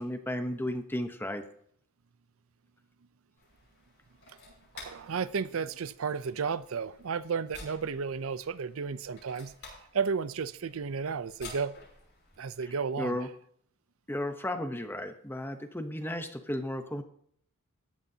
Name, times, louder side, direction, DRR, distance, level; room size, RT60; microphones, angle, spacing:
voice 1, 0.0-1.4 12.7-13.3 14.1-17.0, left 1 dB, 10° left, 0.8 m, -34 dB
sound 1, 3.4-12.7, left 3 dB, 55° left, 5.8 m, -52 dB
voice 2, 4.7-11.7 12.4-13.2, right 5 dB, 70° right, 0.5 m, -33 dB
14.5 x 11.5 x 2.8 m
head